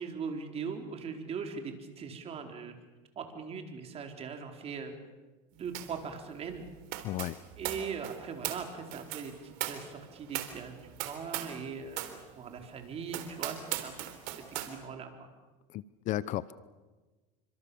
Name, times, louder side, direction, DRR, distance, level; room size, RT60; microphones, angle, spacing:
voice 1, 0.0-2.8 3.2-4.9 5.5-6.6 7.6-15.3, right 6 dB, 35° right, 4 dB, 4.3 m, -40 dB
sound 1, 5.7-6.0 6.3-11.6 11.9-12.2 12.6-12.7 13.1-14.7, right 13 dB, 70° right, 3.7 m, -39 dB
voice 2, 7.0-7.4 15.7-16.5, left 14 dB, 50° left, 18 dB, 0.7 m, -34 dB
29.0 x 25.0 x 7.1 m, 1.3 s
supercardioid pair, 115°, 17 cm